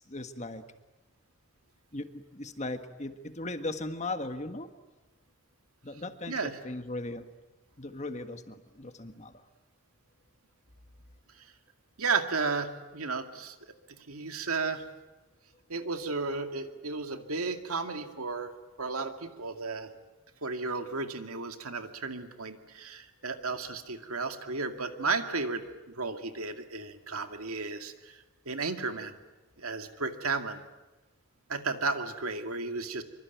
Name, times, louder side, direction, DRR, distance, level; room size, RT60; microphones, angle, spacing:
voice 1, 0.1-0.6 1.9-4.7 5.8-7.2 7.8-9.3, left 2 dB, 30° left, 8 dB, 1.5 m, -38 dB
voice 2, 6.3-6.6 11.4-11.5 12.0-13.6 13.9-14.8 15.7-18.5 18.8-19.9 20.4-25.6 26.0-29.2 29.6-30.6 31.5-33.0, right 4 dB, 85° right, 6 dB, 2.3 m, -33 dB
25.5 x 24.5 x 9.3 m, 1.1 s
head